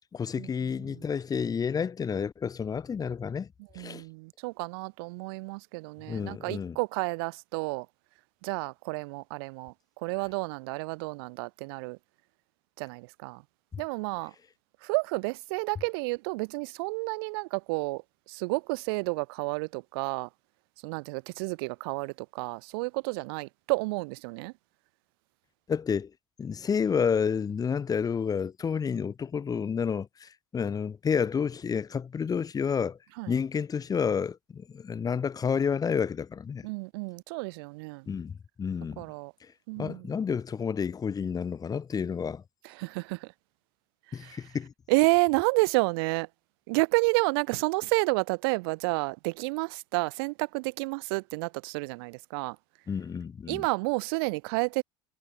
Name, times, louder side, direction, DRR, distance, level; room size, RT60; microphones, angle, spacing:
voice 1, 0.1-3.5 3.7-4.0 6.1-6.8 13.7-13.8 25.7-26.1 26.4-33.0 33.3-36.7 38.1-39.0 39.4-42.4 44.1-44.7 52.9-53.6, left 6 dB, 30° left, 2.4 m, -30 dB
voice 2, 3.7-7.9 8.4-12.0 12.8-13.4 13.8-14.3 14.8-18.0 18.3-20.3 20.8-24.5 33.2-33.3 36.6-38.1 39.0-39.3 39.7-40.2 42.6-43.3 44.2-44.4 44.9-46.3 46.7-52.6 53.5-54.8, right 28 dB, 70° right, 1.0 m, -30 dB
hypercardioid pair, 80°, 13 cm